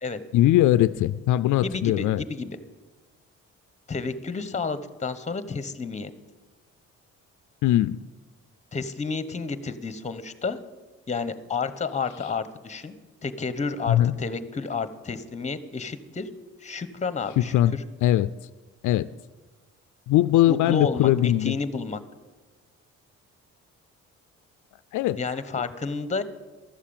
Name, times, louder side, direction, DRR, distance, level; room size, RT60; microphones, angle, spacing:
voice 1, 0.3-2.2 7.6-8.0 13.9-14.1 17.4-17.8 18.0-18.3 18.8-19.1 20.1-21.6 24.9-25.2, left 14 dB, 80° left, 15 dB, 0.4 m, -20 dB
voice 2, 1.6-2.6 3.9-6.1 8.7-10.6 11.1-12.9 13.2-16.3 16.6-17.5 20.5-22.0 25.2-26.2, left 4 dB, 25° left, 13 dB, 1.0 m, -31 dB
13.0 x 7.4 x 8.7 m, 1.3 s
cardioid pair, 90°, 30 cm